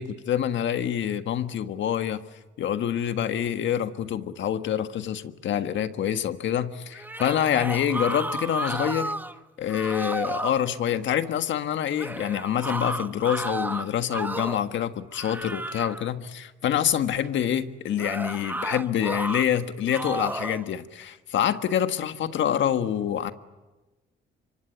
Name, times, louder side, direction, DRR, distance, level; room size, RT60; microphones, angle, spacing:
voice 1, 0.0-2.2 2.6-9.1 9.6-23.3, left 10 dB, 70° left, 1.5 m, -26 dB
sound 1, 6.9-9.4 9.7-10.6 12.0-14.7 15.1-16.1 18.0-19.5 19.9-20.6, right 1 dB, 10° right, 1.1 m, -32 dB
26.0 x 24.5 x 9.1 m
cardioid pair, 90°, 20 cm